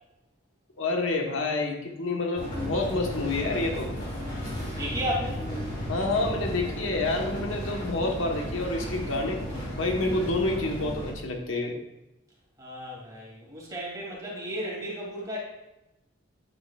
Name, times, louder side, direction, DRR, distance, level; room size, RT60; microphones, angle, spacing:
voice 1, 0.8-3.9 5.9-9.4 9.7-11.8, left 2 dB, 80° left, 1 dB, 1.3 m, -28 dB
sound 1, 2.4-11.1, equal, 30° left, 3.1 m, -34 dB
voice 2, 4.7-5.4 12.6-15.4, equal, 20° right, -4 dB, 2.7 m, -34 dB
9.8 x 8.0 x 2.4 m, 0.94 s
head